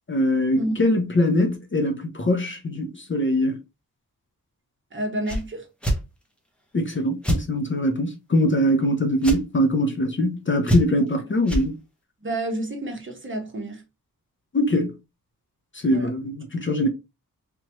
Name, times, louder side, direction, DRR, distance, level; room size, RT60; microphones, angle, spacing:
voice 1, 0.1-3.6 6.7-11.8 14.5-15.0 15.8-16.9, left 1 dB, 35° left, 0.6 m, -22 dB
voice 2, 4.9-5.6 12.2-13.8 15.9-16.1, right 1 dB, 35° right, 1.1 m, -29 dB
sound 1, 5.2-5.4 5.8-6.0 7.2-7.4 9.2-9.4 10.7-11.1 11.5-11.7, right 1 dB, 5° left, 0.9 m, -23 dB
3.4 x 3.0 x 3.0 m
wide cardioid pair, 145°, 35 cm